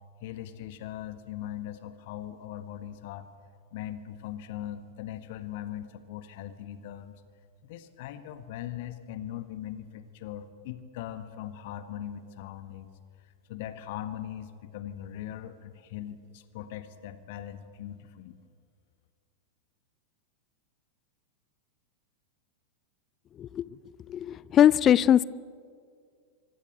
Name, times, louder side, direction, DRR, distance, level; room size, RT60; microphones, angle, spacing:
voice 1, 0.2-3.3 3.7-7.2 7.6-12.9 13.5-18.4, left 11 dB, 50° left, 10 dB, 1.6 m, -40 dB
voice 2, 24.1-25.2, left 10 dB, 30° left, 21 dB, 0.6 m, -21 dB
25.5 x 25.0 x 7.8 m, 2.2 s
figure-of-eight pair, 90°, 0 cm